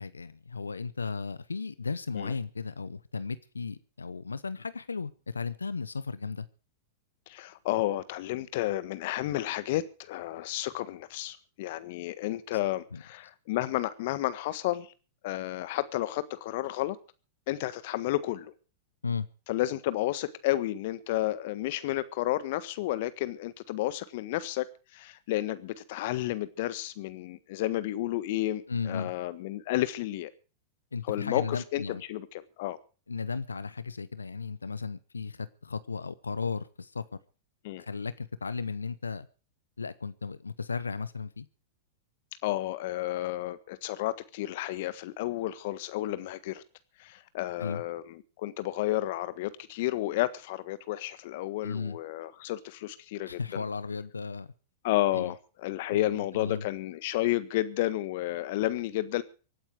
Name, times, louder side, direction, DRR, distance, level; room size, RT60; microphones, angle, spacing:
voice 1, 0.0-6.5 12.9-13.0 19.0-19.3 28.7-29.1 30.9-32.0 33.1-37.0 37.8-39.3 39.8-41.5 47.6-47.8 51.6-52.0 53.3-54.5 55.1-55.3 55.9-56.6, left 5 dB, 85° left, 16 dB, 0.8 m, -35 dB
voice 2, 7.3-14.9 15.2-17.0 17.5-18.5 19.5-30.3 31.1-32.8 37.6-37.8 42.4-46.6 47.0-53.6 54.8-59.2, left 15 dB, 55° left, 15 dB, 1.5 m, -31 dB
24.5 x 9.0 x 4.9 m, 0.36 s
hypercardioid pair, 100°, 0 cm